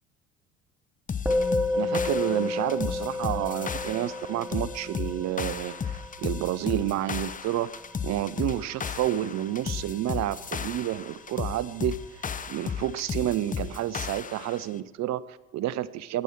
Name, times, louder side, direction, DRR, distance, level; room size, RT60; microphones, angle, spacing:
sound 1, 1.1-14.7, left 6 dB, 25° left, 0.9 m, -35 dB
Musical instrument, 1.3-10.8, left 2 dB, 5° right, 2.2 m, -32 dB
voice 1, 1.7-7.7 8.0-16.2, right 13 dB, 50° right, 18 dB, 0.8 m, -30 dB
20.5 x 9.7 x 4.5 m, 1.1 s
hypercardioid pair, 60°, 34 cm